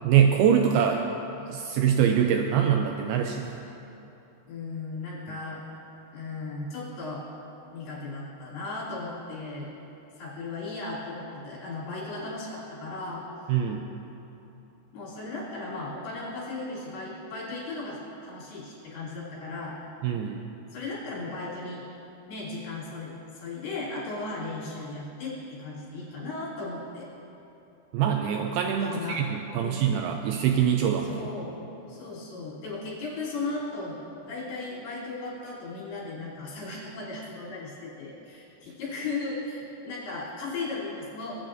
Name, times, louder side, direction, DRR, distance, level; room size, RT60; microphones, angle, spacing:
voice 1, 0.0-1.0 1.5-3.6 5.3-5.4 13.5-13.8 20.0-20.4 27.9-31.2, right 8 dB, 85° right, 3 dB, 2.2 m, -24 dB
voice 2, 4.5-5.6 6.1-7.2 7.7-9.7 10.2-13.3 14.9-19.8 20.7-21.8 22.3-27.1 28.8-29.2 29.6-29.9 31.1-31.6 31.9-41.4, left 3 dB, 65° left, -7 dB, 5.0 m, -36 dB
22.0 x 9.5 x 2.6 m, 3.0 s
omnidirectional pair, 4.9 m